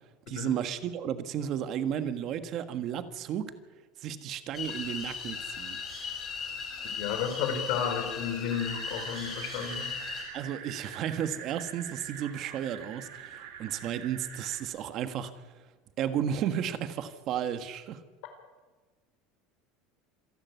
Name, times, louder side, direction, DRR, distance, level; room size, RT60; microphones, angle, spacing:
voice 1, 0.3-3.5 4.0-5.8 10.3-15.5 16.0-18.0, right 9 dB, 40° right, 10 dB, 1.5 m, -33 dB
sound 1, 4.5-10.2, left 5 dB, 25° left, 6.8 m, -37 dB
voice 2, 7.0-9.9, left 7 dB, 60° left, 6 dB, 4.6 m, -32 dB
sound 2, 8.5-14.6, right 9 dB, 90° right, 4.3 m, -44 dB
26.5 x 11.5 x 9.5 m, 1.3 s
cardioid pair, 165°, 0 cm